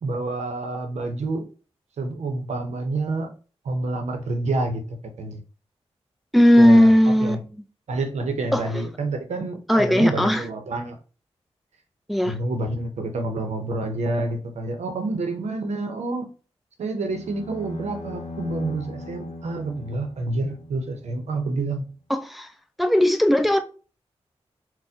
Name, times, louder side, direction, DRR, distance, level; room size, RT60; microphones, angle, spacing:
voice 1, 0.0-1.5 2.0-3.3 3.6-4.8 5.2-5.4 6.6-6.9 7.2-7.4 7.9-11.0 12.2-16.3 16.8-21.8, right 2 dB, 85° right, 0.6 m, -28 dB
voice 2, 6.3-7.5 8.5-8.6 9.7-10.4 12.1-12.3 22.1-22.5 22.8-23.6, equal, ahead, 0.5 m, -17 dB
sound 1, 17.1-21.3, left 3 dB, 85° left, 0.6 m, -39 dB
4.1 x 2.1 x 2.6 m
cardioid pair, 55°, 11 cm